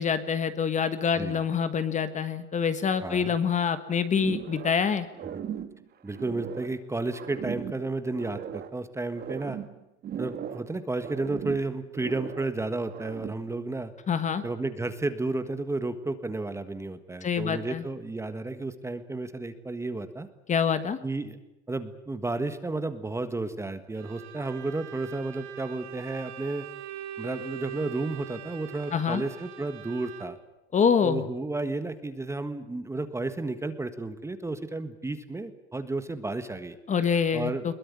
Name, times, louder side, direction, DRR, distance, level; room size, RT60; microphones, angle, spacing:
voice 1, 0.0-5.1 14.1-14.4 17.2-17.8 20.5-21.0 28.9-29.2 30.7-31.2 36.9-37.7, left 6 dB, 20° left, 11 dB, 1.5 m, -26 dB
voice 2, 3.0-3.3 5.2-5.4 6.0-9.6 10.2-13.9 14.4-20.3 21.0-21.4 21.7-26.7 27.2-30.4 31.0-36.8 37.3-37.7, right 2 dB, 10° right, 10 dB, 1.6 m, -32 dB
sound 1, 4.1-4.9 5.1-6.8 7.1-8.8 9.1-10.7 11.0-12.6 12.9-13.5, right 9 dB, 30° right, 1.7 m, -38 dB
Bowed string instrument, 23.9-30.5, right 10 dB, 50° right, 2.7 m, -42 dB
22.0 x 20.5 x 9.7 m, 0.89 s
supercardioid pair, 135°, 33 cm